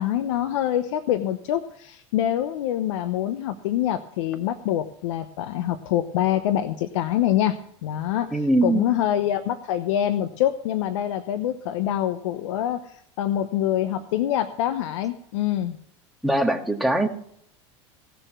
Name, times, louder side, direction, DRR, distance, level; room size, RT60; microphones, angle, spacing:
voice 1, 0.0-15.8, left 11 dB, 75° left, 11 dB, 0.9 m, -25 dB
voice 2, 8.3-8.9 16.2-17.1, right 1 dB, ahead, 2 dB, 2.0 m, -21 dB
17.5 x 6.9 x 6.2 m, 0.67 s
hypercardioid pair, 95°, 16 cm